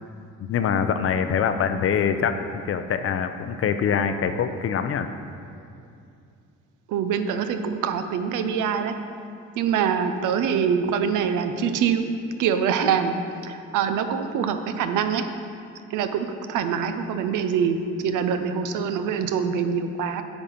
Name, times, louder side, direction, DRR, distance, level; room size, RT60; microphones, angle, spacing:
voice 1, 0.5-5.1, left 7 dB, 50° left, 9 dB, 0.5 m, -24 dB
voice 2, 6.9-8.9 9.6-12.1 12.4-13.2 13.4-15.2 15.9-20.2, right 7 dB, 85° right, 8 dB, 0.6 m, -24 dB
8.7 x 4.0 x 5.8 m, 2.5 s
cardioid pair, 90°, 30 cm